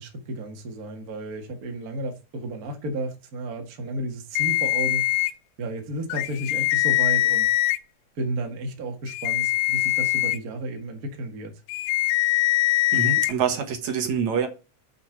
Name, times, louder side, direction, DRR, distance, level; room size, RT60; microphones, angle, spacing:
voice 1, 0.0-5.0 5.6-7.5 8.1-11.5, right 1 dB, 80° right, 0.8 m, -32 dB
sound 1, 4.4-5.3 6.1-7.8 9.1-10.4 11.7-13.3, left 17 dB, 85° left, 2.6 m, -22 dB
voice 2, 12.9-14.5, right 6 dB, 60° right, 2.2 m, -25 dB
7.9 x 5.9 x 4.6 m
omnidirectional pair, 4.7 m